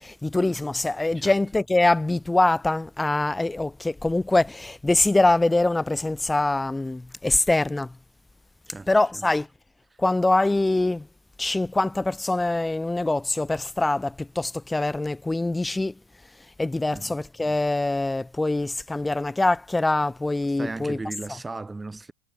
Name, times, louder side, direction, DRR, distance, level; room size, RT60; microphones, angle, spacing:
voice 1, 0.0-7.9 8.9-9.5 10.0-11.1 11.4-15.9 16.6-21.0, left 2 dB, 5° left, 0.5 m, -24 dB
voice 2, 8.7-9.2 9.9-10.0 16.9-17.2 20.6-22.1, right 3 dB, 10° right, 1.7 m, -36 dB
figure-of-eight pair, 90°, 0 cm